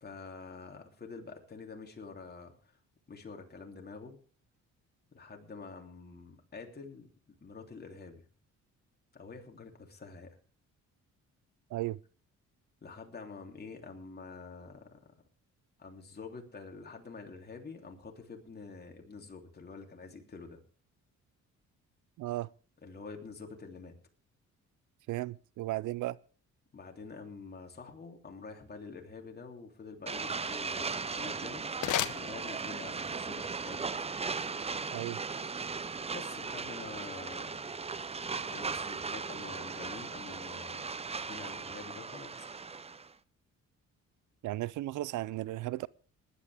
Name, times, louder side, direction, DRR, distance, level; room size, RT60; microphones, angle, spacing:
voice 1, 0.0-2.8 3.1-4.2 5.1-8.2 9.1-10.4 12.8-15.1 15.8-20.6 22.8-24.0 26.7-31.7 32.1-33.9 36.1-37.6 38.5-40.9 41.2-42.5, left 4 dB, 30° left, 3.2 m, -47 dB
voice 2, 22.2-22.5 25.1-26.2 34.9-35.2 44.4-45.9, right 17 dB, 80° right, 0.5 m, -35 dB
sound 1, 30.1-43.1, right 4 dB, 20° right, 0.6 m, -38 dB
sound 2, 30.9-33.0, left 12 dB, 75° left, 0.9 m, -36 dB
19.5 x 11.0 x 3.5 m
cardioid pair, 90°, 30 cm